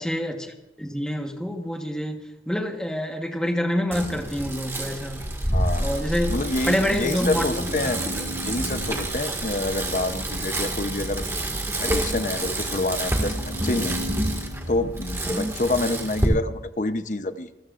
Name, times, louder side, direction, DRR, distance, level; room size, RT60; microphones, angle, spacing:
voice 1, 0.0-5.3 5.8-6.4 6.7-8.3, equal, 5° left, 3 dB, 1.3 m, -27 dB
Bicycle, 3.9-16.2, right 1 dB, 15° right, 1.9 m, -28 dB
voice 2, 5.5-8.0 8.4-11.3 11.8-14.0 14.7-17.5, left 2 dB, 40° left, 10 dB, 0.8 m, -27 dB
sound 1, 6.6-15.6, equal, 75° right, 6.0 m, -37 dB
27.5 x 14.5 x 2.5 m, 0.91 s
head